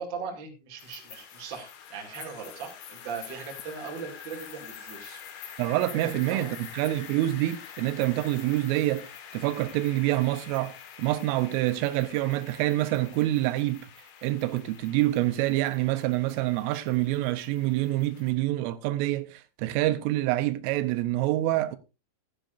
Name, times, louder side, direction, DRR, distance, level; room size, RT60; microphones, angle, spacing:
voice 1, 0.0-5.2 5.9-6.0 6.3-6.5, right 5 dB, 35° right, 1.9 m, -39 dB
sound 1, 0.8-18.3, left 8 dB, 70° left, 3.5 m, -46 dB
voice 2, 5.6-9.1 9.3-13.9 14.2-21.8, right 16 dB, 85° right, 3.3 m, -26 dB
15.0 x 11.5 x 2.6 m
omnidirectional pair, 5.8 m